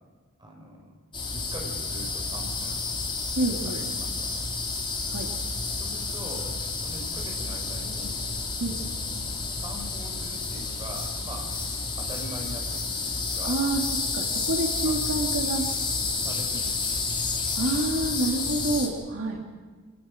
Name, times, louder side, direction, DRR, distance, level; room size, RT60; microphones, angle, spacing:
voice 1, 0.4-0.9 1.3-2.8 3.6-4.5 5.7-8.2 8.9-11.5 12.0-13.6 14.8-15.0 15.4-17.0, right 1 dB, 20° right, 1 dB, 5.1 m, -43 dB
sound 1, 1.1-18.9, left 4 dB, 25° left, 3.8 m, -30 dB
voice 2, 3.3-3.8 5.1-5.3 8.6-8.8 13.4-13.8 14.1-15.7 17.5-19.4, right 2 dB, 65° right, 1 dB, 2.4 m, -28 dB
27.5 x 19.5 x 6.5 m, 1.4 s
head